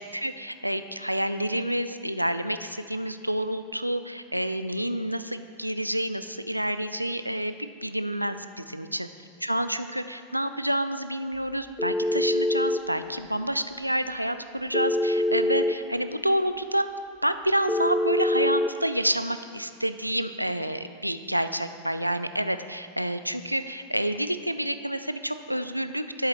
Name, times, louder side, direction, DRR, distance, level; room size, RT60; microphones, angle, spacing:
voice 1, 0.1-9.1 9.4-16.8 17.2-26.3, right 1 dB, 90° right, 11 dB, 0.3 m, -28 dB
Telephone, 11.8-12.8 14.7-15.8 17.7-18.7, left 1 dB, ahead, 0.3 m, -24 dB
10.0 x 8.1 x 3.2 m, 2.3 s
figure-of-eight pair, 90°, 0 cm